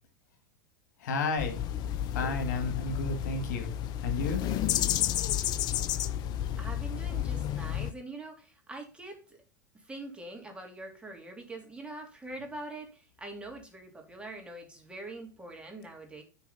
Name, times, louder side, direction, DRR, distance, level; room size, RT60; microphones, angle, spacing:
voice 1, 1.0-1.6 2.1-3.7 4.0-4.4, left 3 dB, 70° left, 6 dB, 2.0 m, -31 dB
sound 1, 1.4-7.9, left 11 dB, 45° left, 0.7 m, -31 dB
voice 2, 6.6-9.4 9.7-16.2, right 2 dB, 10° right, 1 dB, 3.1 m, -44 dB
9.6 x 4.7 x 5.7 m, 0.33 s
hypercardioid pair, 90°, 10 cm